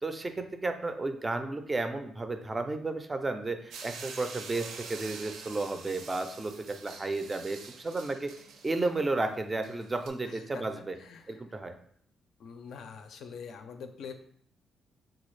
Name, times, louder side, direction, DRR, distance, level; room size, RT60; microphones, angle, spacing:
voice 1, 0.0-8.3 8.6-11.0 11.3-11.8, right 2 dB, 20° right, 7 dB, 0.4 m, -33 dB
sound 1, 3.7-10.1, right 5 dB, 80° right, 0.5 m, -46 dB
voice 2, 10.3-10.6 11.0-11.4 12.4-14.1, left 6 dB, 70° left, 7 dB, 0.4 m, -44 dB
4.0 x 2.3 x 3.1 m, 0.62 s
cardioid pair, 125°, 0 cm